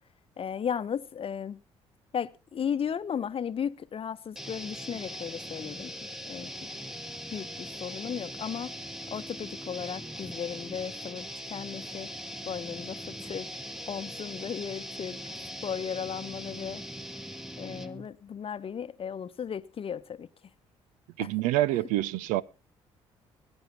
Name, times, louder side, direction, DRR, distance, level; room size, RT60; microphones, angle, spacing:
voice 1, 0.4-1.6 2.1-6.5 7.3-8.8 9.1-12.1 12.4-13.5 13.9-15.2 15.6-16.8 17.6-20.3 21.2-21.3, left 8 dB, 40° left, 0.9 m, -35 dB
sound 1, 4.3-18.1, equal, 5° right, 1.3 m, -40 dB
voice 2, 21.2-22.4, right 15 dB, 65° right, 0.6 m, -26 dB
20.5 x 11.0 x 2.9 m
figure-of-eight pair, 45°, 15 cm